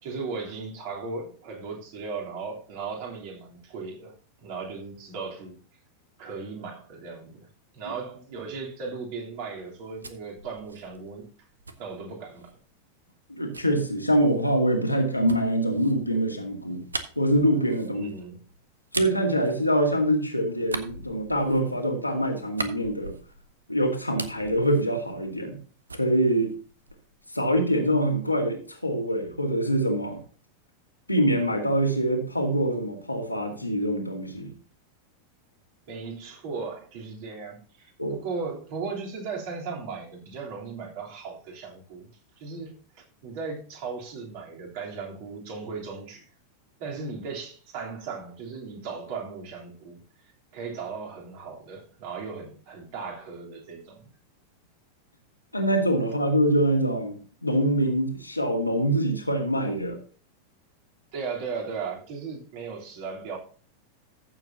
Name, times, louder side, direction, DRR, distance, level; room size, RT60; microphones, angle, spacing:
voice 1, 0.0-4.1 4.4-5.6 6.2-7.5 7.7-11.3 11.8-12.6 17.9-18.4 35.9-42.1 42.4-42.8 43.2-46.3 46.8-50.0 50.5-54.1 61.1-63.4, right 4 dB, 50° right, 3.3 m, -37 dB
sound 1, 9.6-12.6 13.5-20.2 20.6-23.6 23.9-25.6 25.9-27.2, right 3 dB, 80° right, 0.8 m, -40 dB
voice 2, 13.3-16.8 17.2-18.1 19.0-23.2 23.7-25.6 25.9-26.5 27.3-30.2 31.1-34.5 38.0-38.2 55.5-60.0, right 1 dB, 85° left, 2.1 m, -24 dB
14.5 x 7.2 x 2.8 m
figure-of-eight pair, 90°, 0 cm